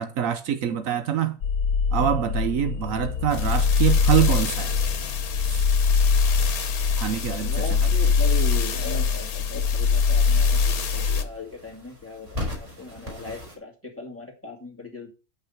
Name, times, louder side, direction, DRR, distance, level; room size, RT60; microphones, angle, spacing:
voice 1, 0.0-1.4 1.9-4.8 5.5-5.6 7.0-7.6, right 10 dB, 70° right, 1.1 m, -25 dB
sound 1, 1.4-11.2, left 5 dB, 80° left, 1.5 m, -22 dB
sound 2, 3.1-13.6, left 2 dB, 25° right, 4.0 m, -42 dB
voice 2, 7.4-15.1, left 3 dB, 10° left, 2.3 m, -38 dB
8.1 x 5.9 x 5.8 m
omnidirectional pair, 1.5 m